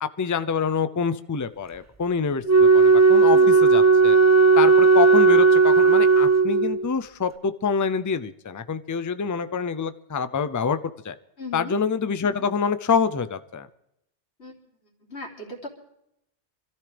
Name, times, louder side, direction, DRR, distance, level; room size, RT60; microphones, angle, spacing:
voice 1, 0.0-4.2 4.6-10.8 11.0-11.2 11.5-13.7, left 6 dB, 25° left, 12 dB, 0.4 m, -26 dB
Wind instrument woodwind instrument, 2.4-6.9, right 4 dB, 15° right, 0.7 m, -15 dB
voice 2, 11.4-11.8 14.4-14.5 15.0-15.7, left 2 dB, 70° left, -1 dB, 3.4 m, -37 dB
26.0 x 13.5 x 3.4 m, 0.81 s
omnidirectional pair, 1.1 m